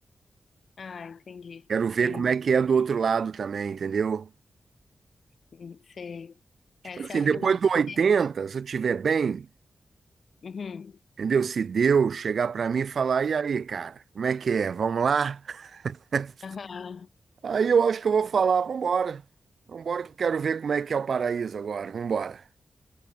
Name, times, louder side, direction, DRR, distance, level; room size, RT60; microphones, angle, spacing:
voice 1, 0.8-1.7 2.0-2.3 5.5-6.4 6.8-7.6 7.9-8.0 10.4-11.0 16.4-17.1, left 5 dB, 60° left, 4.9 m, -40 dB
voice 2, 1.7-4.3 7.0-9.5 11.2-16.3 17.4-19.2 19.7-22.4, right 6 dB, 65° right, 0.8 m, -25 dB
wide cardioid pair, 105°, 0 cm